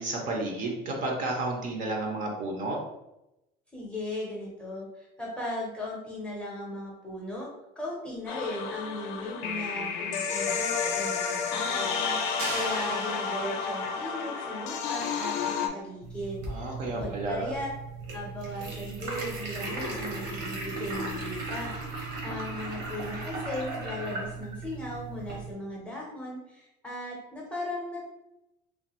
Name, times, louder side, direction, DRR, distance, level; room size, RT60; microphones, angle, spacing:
voice 1, 0.0-2.8 16.5-17.5, right 2 dB, 45° right, 1 dB, 0.5 m, -31 dB
voice 2, 3.7-7.5 7.8-17.7 18.1-28.0, left 1 dB, 5° left, -4 dB, 0.6 m, -37 dB
sound 1, 8.3-15.7, left 6 dB, 80° left, 0.4 m, -31 dB
sound 2, 12.4-13.9, right 2 dB, 85° right, 1.4 m, -38 dB
sound 3, 16.0-25.5, right 2 dB, 70° right, 1.0 m, -36 dB
3.0 x 2.2 x 2.9 m, 0.88 s
cardioid pair, 170°, 18 cm